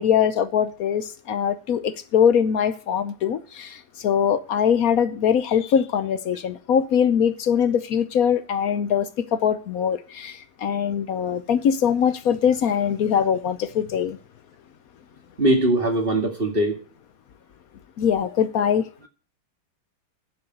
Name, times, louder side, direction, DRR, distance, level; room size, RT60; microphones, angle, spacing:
voice 1, 0.0-14.2 18.0-18.9, left 8 dB, 65° left, 0.9 m, -22 dB
voice 2, 15.4-16.8, right 1 dB, 30° right, 2.3 m, -21 dB
9.9 x 7.1 x 7.8 m
omnidirectional pair, 2.2 m